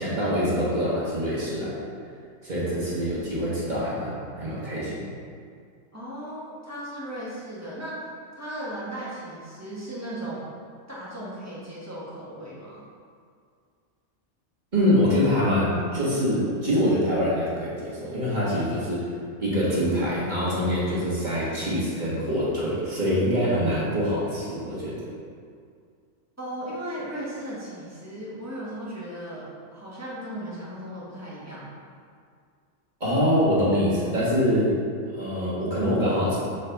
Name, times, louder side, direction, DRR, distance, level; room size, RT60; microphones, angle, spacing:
voice 1, 0.0-1.9 2.4-5.0 14.7-19.1 19.4-24.9 33.0-34.8 35.0-36.4, equal, 35° right, -8 dB, 1.6 m, -24 dB
voice 2, 5.9-8.1 8.4-10.5 10.9-12.8 26.4-31.7, right 1 dB, 10° right, -8 dB, 1.4 m, -36 dB
6.8 x 4.6 x 3.5 m, 2.2 s
omnidirectional pair, 1.4 m